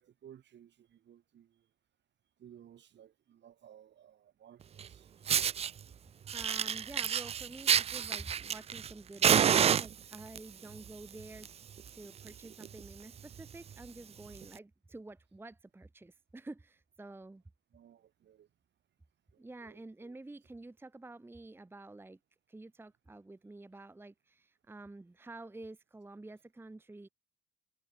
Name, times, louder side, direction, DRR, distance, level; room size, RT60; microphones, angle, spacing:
voice 1, 0.0-1.7 2.4-5.1 17.7-18.5 19.3-20.2, right 10 dB, 60° right, 7.1 m, -58 dB
Fire, 4.8-4.9 5.3-5.7 6.3-8.9 9.2-10.4 11.2-11.5 11.8-11.9 12.3-12.4 12.6-12.9 13.4-13.5 14.4-14.5, right 8 dB, 30° right, 0.3 m, -28 dB
voice 2, 6.3-11.5 11.9-17.4 19.4-22.2 22.5-27.1, right 2 dB, 10° right, 0.8 m, -49 dB
cardioid pair, 85°, 20 cm